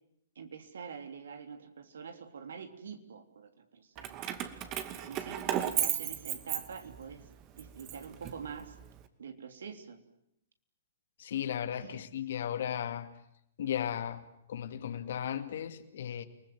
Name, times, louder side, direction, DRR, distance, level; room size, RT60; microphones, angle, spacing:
voice 1, 0.4-4.3 5.0-7.3 7.6-8.8 9.2-10.0 11.8-12.0, right 6 dB, 70° right, 3.4 m, -45 dB
Keys jangling, 4.0-7.1 7.6-8.9, right 11 dB, 35° right, 2.3 m, -35 dB
voice 2, 11.2-13.1 13.6-16.2, left 9 dB, 65° left, 2.5 m, -35 dB
29.5 x 20.5 x 9.5 m
hypercardioid pair, 120°, 0 cm